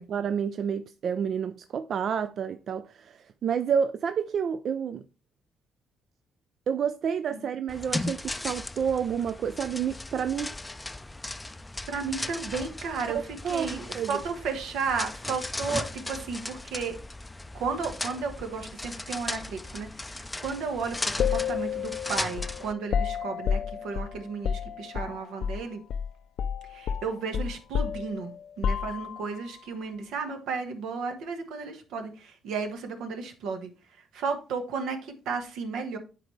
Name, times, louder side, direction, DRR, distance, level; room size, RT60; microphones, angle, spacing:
voice 1, 0.0-5.0 6.7-10.5 13.1-14.1, right 7 dB, 60° right, 0.4 m, -29 dB
sound 1, 7.7-22.7, left 2 dB, 15° left, 0.4 m, -37 dB
voice 2, 11.9-13.2 13.5-17.0 17.5-25.8 26.6-33.7 34.1-36.0, right 5 dB, 85° right, 1.3 m, -33 dB
sound 2, 21.2-25.6 25.9-26.1 26.4-29.4, left 7 dB, 70° left, 0.5 m, -30 dB
9.7 x 4.0 x 3.2 m
cardioid pair, 90°, 0 cm